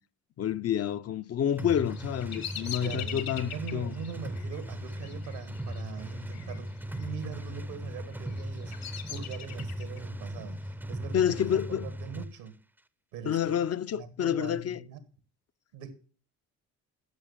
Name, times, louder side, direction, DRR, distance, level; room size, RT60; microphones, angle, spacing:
voice 1, 0.4-3.9 11.1-11.9 13.2-14.8, left 9 dB, 40° left, 0.5 m, -29 dB
Bird vocalization bird call bird song, 1.5-6.6 6.8-7.4 8.0-10.0, left 10 dB, 70° left, 1.5 m, -42 dB
sound 1, 1.6-12.3, equal, 5° right, 0.5 m, -38 dB
voice 2, 2.8-12.6 13.1-13.6 13.9-15.0 15.7-15.9, right 7 dB, 85° right, 1.8 m, -42 dB
10.5 x 6.6 x 7.1 m
supercardioid pair, 65°, 37 cm